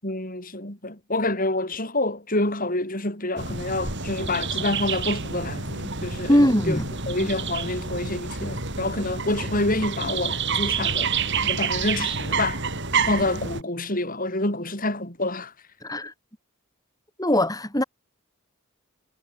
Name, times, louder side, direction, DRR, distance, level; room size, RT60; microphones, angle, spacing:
voice 1, 0.0-6.4 6.7-6.8 7.1-11.1 11.4-12.6 13.1-15.5, left 2 dB, 40° left, 6.4 m, -27 dB
sound 1, 3.4-13.6, right 5 dB, 55° right, 7.5 m, -28 dB
voice 2, 6.3-6.9 15.8-16.1 17.2-17.8, equal, 15° left, 6.9 m, -21 dB
head